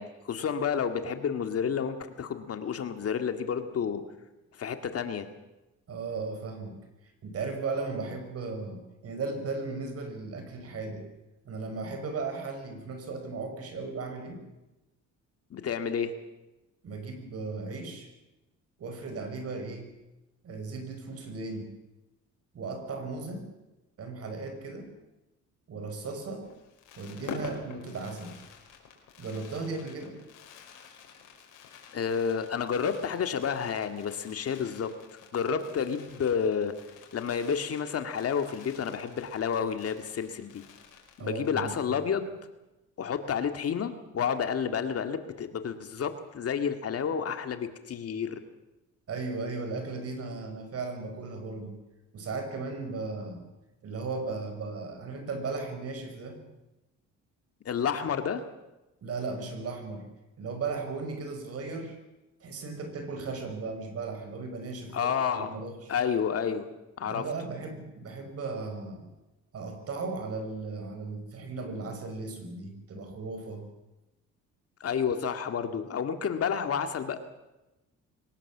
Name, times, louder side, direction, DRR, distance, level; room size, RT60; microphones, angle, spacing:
voice 1, 0.0-4.0 4.6-5.3 15.5-16.1 31.9-34.9 35.3-36.8 37.1-40.6 41.2-42.3 43.0-48.4 57.7-58.4 64.9-66.6 67.0-67.2 74.8-77.2, left 7 dB, 50° left, 8 dB, 2.2 m, -30 dB
voice 2, 5.9-6.8 7.2-11.1 11.4-14.4 16.8-18.1 18.8-19.9 20.4-21.7 22.5-23.5 24.0-24.9 25.7-26.5 27.0-28.4 29.2-30.2 41.2-41.7 49.1-51.8 52.1-53.5 53.8-56.4 59.0-60.1 60.4-62.0 62.4-65.9 67.0-69.1 69.5-73.7, right 3 dB, 50° right, 6 dB, 5.4 m, -36 dB
Fireworks, 26.4-41.6 41.9-42.0 42.2-42.5, left 6 dB, 90° left, 5.0 m, -48 dB
23.0 x 19.0 x 7.4 m, 1.0 s
cardioid pair, 115°, 30 cm